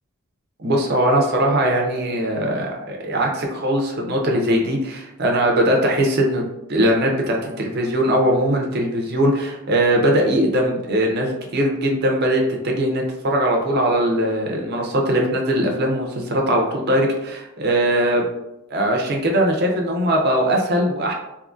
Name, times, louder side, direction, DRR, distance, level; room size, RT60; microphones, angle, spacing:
voice 1, 0.6-6.4 6.7-18.3 18.7-21.1, right 1 dB, 50° right, 0 dB, 0.6 m, -20 dB
3.6 x 2.7 x 2.5 m, 0.89 s
head